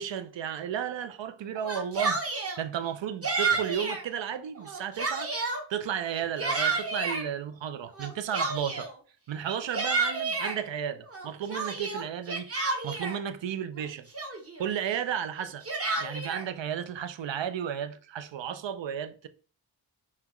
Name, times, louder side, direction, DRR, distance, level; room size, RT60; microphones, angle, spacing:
voice 1, 0.0-2.2 2.6-8.9 9.3-14.1 14.6-15.6 16.0-19.3, right 9 dB, 70° right, 0.5 m, -33 dB
Yell, 1.6-2.6 3.2-4.0 4.6-5.6 6.1-7.2 8.0-8.9 9.5-10.6 11.1-13.2 13.8-13.9 14.1-14.6 15.4-16.5, right 3 dB, 30° right, 0.8 m, -30 dB
5.7 x 2.3 x 2.9 m
wide cardioid pair, 90°, 46 cm